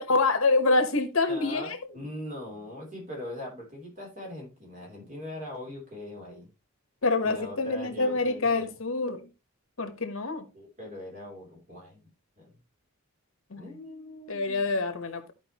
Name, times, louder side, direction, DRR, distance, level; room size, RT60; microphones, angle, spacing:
voice 1, 0.1-1.8 7.0-9.3 9.8-10.4 13.5-13.6 14.3-15.3, left 3 dB, 70° left, 1.1 m, -26 dB
voice 2, 1.3-6.5 7.2-8.8 10.5-12.6 13.6-14.9, left 1 dB, 35° right, 3.2 m, -41 dB
12.5 x 5.0 x 2.9 m
head